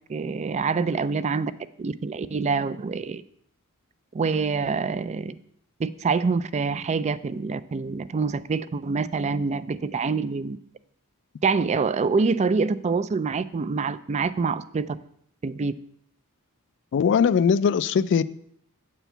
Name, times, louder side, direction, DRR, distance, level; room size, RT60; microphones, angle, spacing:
voice 1, 0.1-1.5 1.8-3.2 4.1-5.3 5.8-10.6 11.4-15.0 15.4-15.7, right 4 dB, 30° right, 0.3 m, -26 dB
voice 2, 16.9-18.2, left 6 dB, 55° left, 0.3 m, -20 dB
9.0 x 4.5 x 6.8 m
head